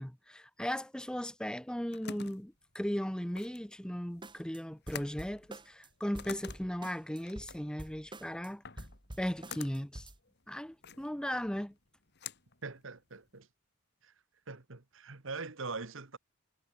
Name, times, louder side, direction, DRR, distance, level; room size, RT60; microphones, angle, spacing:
voice 1, 0.0-8.6 9.2-10.1 10.5-11.7, equal, 5° left, 0.8 m, -37 dB
sound 1, 1.5-13.4, left 6 dB, 55° left, 3.2 m, -50 dB
sound 2, 4.2-4.6 4.9-5.9 6.1-8.5 8.8-10.2, right 1 dB, 20° right, 3.9 m, -47 dB
voice 2, 12.6-13.5 14.0-14.1 14.5-16.2, right 4 dB, 65° right, 1.6 m, -42 dB
head